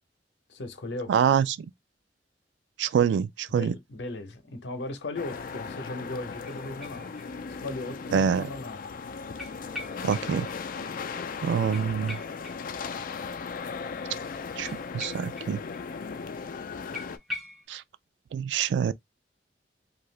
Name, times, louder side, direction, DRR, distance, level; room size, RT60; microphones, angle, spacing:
voice 1, 0.5-1.1 3.6-7.1 7.6-8.9, left 2 dB, 85° left, 0.7 m, -37 dB
voice 2, 1.1-1.6 2.8-3.7 8.1-8.5 10.0-10.5 11.4-12.2 14.6-15.6 17.7-17.8 18.3-18.9, right 7 dB, 80° right, 0.3 m, -25 dB
sound 1, 5.1-17.2, left 5 dB, 50° left, 0.4 m, -37 dB
sound 2, 6.4-7.6 7.9-8.0 9.4-10.6 10.8-10.9 11.2-11.3 11.7-13.2 14.6-15.8 16.1-16.2 16.5-16.6 16.9-17.7, left 2 dB, ahead, 0.7 m, -42 dB
2.7 x 2.4 x 3.1 m
head